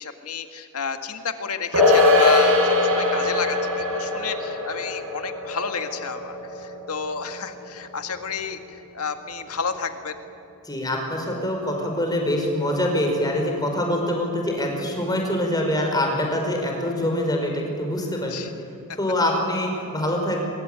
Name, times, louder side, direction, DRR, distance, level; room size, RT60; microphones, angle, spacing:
voice 1, 0.0-10.2 18.3-18.5, left 6 dB, 80° left, 7 dB, 1.9 m, -31 dB
sound 1, 1.7-8.4 8.7-8.8, left 2 dB, 65° right, 5.0 m, -22 dB
voice 2, 10.6-18.5 18.9-20.4, left 1 dB, 20° left, 2 dB, 5.4 m, -24 dB
24.5 x 22.0 x 9.3 m, 2.9 s
head